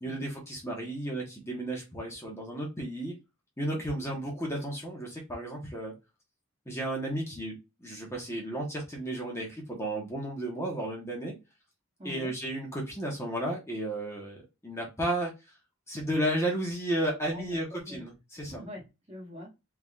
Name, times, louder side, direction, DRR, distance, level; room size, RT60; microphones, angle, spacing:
voice 1, 0.0-3.1 3.6-5.9 6.7-7.5 7.8-11.3 12.0-15.3 15.9-18.6, right 1 dB, 15° left, 1.1 m, -33 dB
voice 2, 3.6-4.2 12.0-12.3 17.3-18.1 18.5-19.5, equal, 30° right, 1.4 m, -45 dB
3.9 x 3.4 x 2.4 m
head